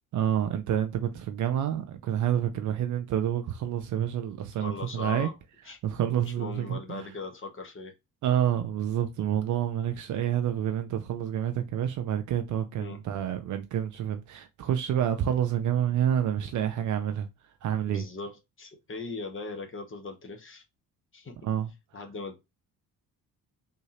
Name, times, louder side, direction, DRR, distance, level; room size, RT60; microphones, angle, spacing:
voice 1, 0.1-5.3 5.8-7.1 8.2-17.3 17.6-18.1 21.4-21.7, right 10 dB, 40° right, 0.5 m, -28 dB
voice 2, 4.6-5.3 5.6-5.8 6.2-7.9 12.8-13.0 17.9-20.6 21.1-21.4 21.9-22.4, left 3 dB, 25° left, 1.0 m, -39 dB
3.5 x 2.7 x 2.9 m
figure-of-eight pair, 45°, 46 cm